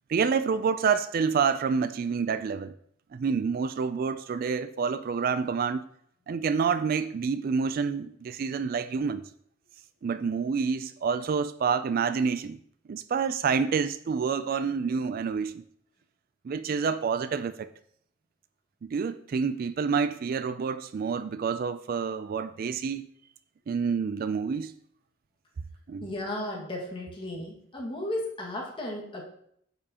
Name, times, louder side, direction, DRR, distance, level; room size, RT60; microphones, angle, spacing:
voice 1, 0.1-2.7 3.1-5.9 6.3-9.3 10.0-12.6 12.9-15.6 16.4-17.7 18.8-23.1 23.7-24.7 25.9-26.1, right 5 dB, 50° right, 0.3 m, -28 dB
voice 2, 26.0-29.2, left 1 dB, 25° left, 1.8 m, -34 dB
9.6 x 6.9 x 2.9 m
head